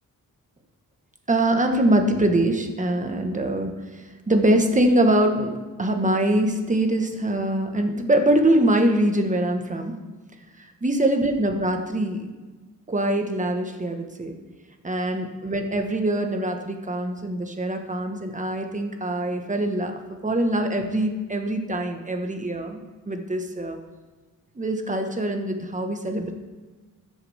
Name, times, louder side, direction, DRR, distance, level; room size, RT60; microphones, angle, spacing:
voice 1, 1.3-9.9 10.6-12.3 12.9-14.3 14.8-23.8 24.5-26.3, right 1 dB, 20° right, 4 dB, 1.4 m, -23 dB
13.5 x 7.1 x 3.6 m, 1.3 s
cardioid pair, 65°, 35 cm